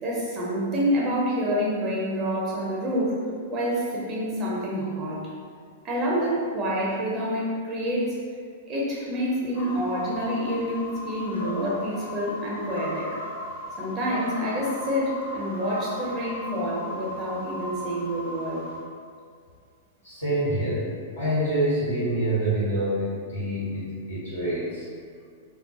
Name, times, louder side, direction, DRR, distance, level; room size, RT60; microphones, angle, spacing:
voice 1, 0.0-3.2 3.5-5.2 5.8-8.2 8.7-13.1 13.8-18.6, equal, 30° right, -5 dB, 0.5 m, -27 dB
sound 1, 9.5-18.8, left 2 dB, 50° left, 0.7 m, -38 dB
Animal, 11.3-12.0 12.7-13.3 13.9-14.7 15.4-16.1, equal, 85° right, 0.3 m, -37 dB
voice 2, 20.0-20.8 21.2-24.8, right 1 dB, 75° left, -12 dB, 1.0 m, -26 dB
2.2 x 2.0 x 2.7 m, 2.1 s
figure-of-eight pair, 100°, 0 cm